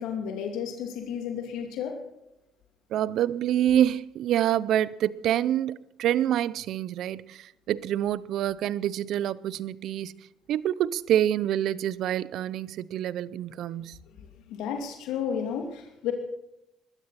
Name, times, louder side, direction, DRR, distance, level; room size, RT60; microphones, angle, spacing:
voice 1, 0.0-2.0 14.5-16.1, left 8 dB, 85° left, 2.5 m, -32 dB
voice 2, 2.9-10.1 10.5-14.0, right 11 dB, 70° right, 0.6 m, -27 dB
21.0 x 13.0 x 4.2 m
supercardioid pair, 75°, 0 cm